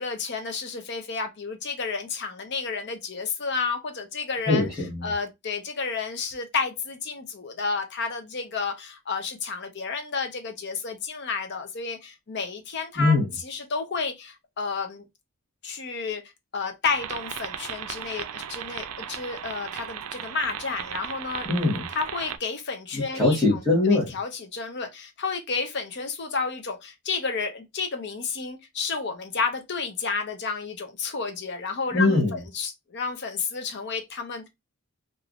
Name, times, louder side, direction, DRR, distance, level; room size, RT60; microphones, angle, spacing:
voice 1, 0.0-4.7 5.0-13.2 13.4-15.0 15.6-16.2 16.5-21.5 22.0-23.4 23.9-32.2 32.5-34.5, left 4 dB, 50° left, 0.6 m, -31 dB
voice 2, 4.5-5.1 13.0-13.3 21.4-21.8 22.9-24.2 31.9-32.4, left 2 dB, 15° left, 1.2 m, -22 dB
sound 1, 16.8-22.4, right 9 dB, 75° right, 0.4 m, -36 dB
3.4 x 2.5 x 2.4 m
head